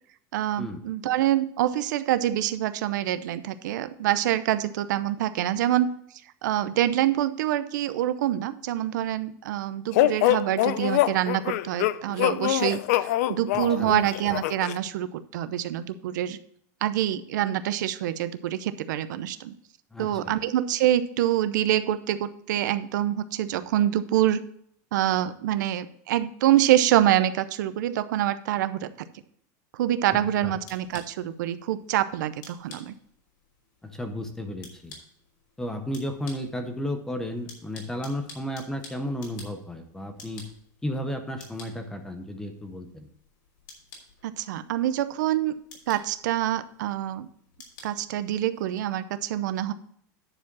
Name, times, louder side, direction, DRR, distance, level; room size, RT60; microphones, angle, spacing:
voice 1, 0.3-5.9 6.4-16.4 16.8-19.5 20.0-24.4 24.9-28.9 29.7-32.9 44.2-45.5 45.9-47.3 47.8-49.7, right 12 dB, 75° right, 13 dB, 0.6 m, -26 dB
sound 1, 9.9-14.8, left 14 dB, 50° left, 0.4 m, -24 dB
voice 2, 13.5-13.9 19.9-20.4 30.1-30.6 33.8-34.9 35.6-40.4 40.8-43.1, left 1 dB, 5° left, 7 dB, 0.6 m, -33 dB
sound 2, 30.0-48.8, left 4 dB, 80° left, 3.3 m, -52 dB
9.9 x 4.8 x 6.0 m, 0.67 s
supercardioid pair, 175°, 10 cm